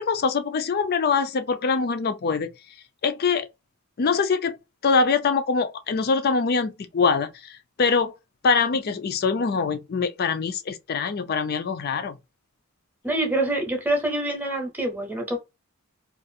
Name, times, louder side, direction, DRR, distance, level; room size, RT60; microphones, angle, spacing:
voice 1, 0.0-2.5 3.0-3.5 4.0-4.6 4.8-8.1 8.4-12.1, left 5 dB, 45° left, 0.4 m, -23 dB
voice 2, 13.0-15.4, right 1 dB, 10° right, 0.8 m, -26 dB
2.5 x 2.4 x 2.7 m
head